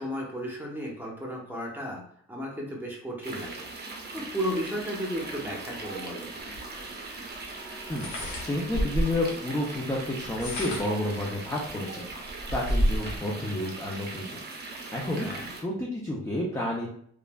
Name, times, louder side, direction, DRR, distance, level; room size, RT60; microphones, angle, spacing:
voice 1, 0.0-2.0 2.3-3.7 4.1-6.3 15.2-15.5, equal, 5° right, -2 dB, 0.9 m, -34 dB
sound 1, 3.2-15.6, right 3 dB, 35° right, 0.7 m, -40 dB
sound 2, 6.5-6.6 7.9-9.2 10.2-11.1 11.7-11.8 12.1-13.2, equal, 70° left, 1.1 m, -29 dB
voice 2, 8.4-14.4 14.9-16.9, left 1 dB, 10° left, -3 dB, 0.5 m, -31 dB
3.1 x 2.5 x 2.3 m, 0.63 s
cardioid pair, 90°, 30 cm